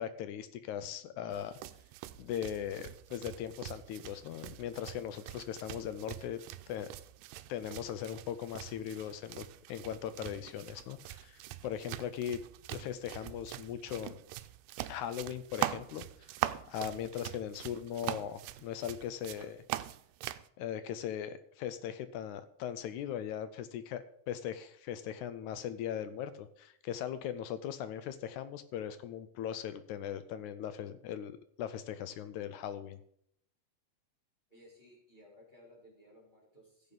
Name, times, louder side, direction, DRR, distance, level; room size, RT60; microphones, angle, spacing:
voice 1, 0.0-1.6 2.2-6.4 6.7-6.9 7.5-12.4 12.7-14.2 14.9-16.1 16.7-19.6 20.6-33.0, left 9 dB, 80° left, 12 dB, 1.9 m, -39 dB
sound 1, 1.3-20.5, right 15 dB, 90° right, 2.1 m, -43 dB
voice 2, 34.5-36.9, equal, 15° left, -4 dB, 3.5 m, -59 dB
15.5 x 7.3 x 4.0 m, 0.69 s
omnidirectional pair, 3.7 m